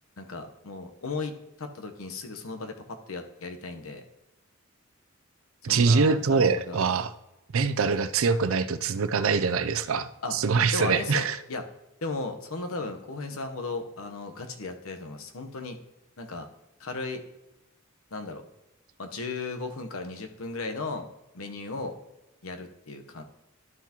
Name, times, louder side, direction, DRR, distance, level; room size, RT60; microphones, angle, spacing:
voice 1, 0.2-4.0 5.7-6.8 10.2-10.4 10.7-11.6 12.0-15.8 16.2-16.5 16.8-17.2 18.1-18.4 19.0-21.1 21.3-22.0 22.4-23.2, left 3 dB, 90° left, 5 dB, 1.0 m, -36 dB
voice 2, 5.6-7.1 7.5-11.4, right 5 dB, 75° right, 12 dB, 0.5 m, -24 dB
12.0 x 5.9 x 2.9 m, 0.97 s
head